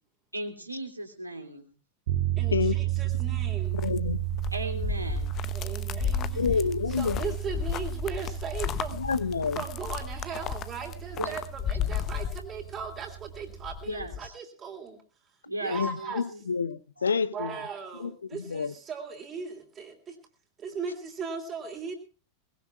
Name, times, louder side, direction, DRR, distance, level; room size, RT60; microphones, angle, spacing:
voice 1, 0.3-1.7 4.5-5.3 11.2-11.3 13.8-14.3 15.5-16.4, right 1 dB, 85° right, 2.9 m, -36 dB
sound 1, 2.1-13.9, right 15 dB, 55° right, 1.8 m, -33 dB
voice 2, 2.4-3.8 5.5-9.0 9.5-15.0 15.6-16.2 17.3-20.2 20.6-21.9, right 5 dB, 25° right, 3.3 m, -38 dB
sound 2, 3.1-13.0 13.3-14.3, left 9 dB, 30° left, 0.9 m, -34 dB
voice 3, 3.8-4.2 6.4-7.2 8.9-9.6 15.7-17.5 18.0-18.1 18.5-18.7, left 5 dB, 75° left, 0.9 m, -28 dB
22.0 x 20.5 x 2.4 m
figure-of-eight pair, 90°, 0 cm